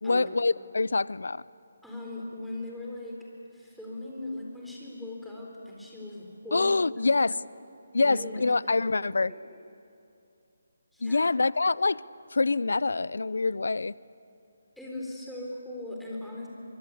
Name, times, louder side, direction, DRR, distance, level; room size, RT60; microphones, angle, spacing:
voice 1, 0.0-1.4 6.5-7.4 7.9-9.3 11.0-12.0 12.3-13.9, left 3 dB, 80° left, 21 dB, 0.5 m, -25 dB
voice 2, 1.8-6.7 7.2-7.3 8.0-8.4 8.7-9.6 10.9-11.3 14.8-16.5, left 2 dB, ahead, -4 dB, 4.1 m, -39 dB
24.0 x 24.0 x 8.4 m, 2.7 s
figure-of-eight pair, 160°, 0 cm